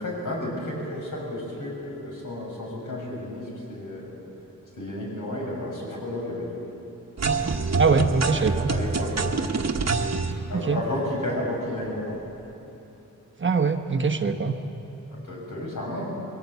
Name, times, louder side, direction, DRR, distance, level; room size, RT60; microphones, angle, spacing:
voice 1, 0.0-4.1 4.7-6.7 8.2-8.3 8.7-9.4 10.5-12.2 15.2-16.1, left 1 dB, 70° left, -2 dB, 6.5 m, -32 dB
sound 1, 7.2-10.3, right 4 dB, 55° right, 1.3 m, -26 dB
voice 2, 7.8-8.7 10.5-10.8 13.4-14.5, right 4 dB, 35° right, 6 dB, 1.0 m, -23 dB
22.5 x 17.5 x 8.2 m, 2.9 s
wide cardioid pair, 130°, 33 cm